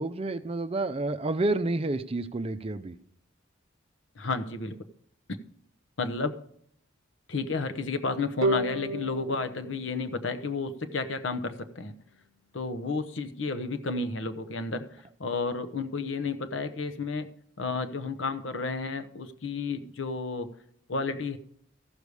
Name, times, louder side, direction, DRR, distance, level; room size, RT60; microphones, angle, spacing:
voice 1, 0.0-3.0, right 2 dB, 30° right, 11 dB, 0.5 m, -29 dB
voice 2, 4.1-4.8 5.3-5.4 6.0-6.4 7.3-11.9 12.5-17.3 17.6-20.5 20.9-21.4, left 3 dB, 75° left, 9 dB, 0.9 m, -32 dB
sound 1, 8.4-11.7, right 1 dB, 85° right, 0.6 m, -33 dB
14.0 x 6.8 x 4.8 m, 0.68 s
head